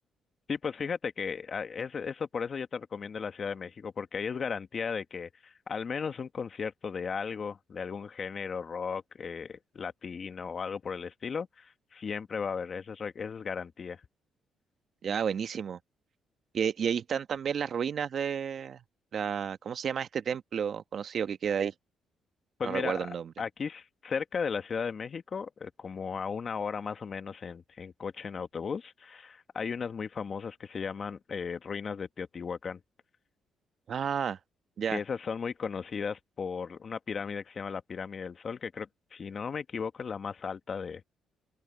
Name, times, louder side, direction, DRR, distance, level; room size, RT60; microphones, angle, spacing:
voice 1, 0.5-14.0 22.6-32.8 34.9-41.0, left 6 dB, 45° left, 1.5 m, -36 dB
voice 2, 15.0-15.8 16.5-18.8 19.1-21.7 22.6-23.3 33.9-34.4 34.8-35.0, right 7 dB, 55° right, 1.1 m, -31 dB
open air
cardioid pair, 90°, 0 cm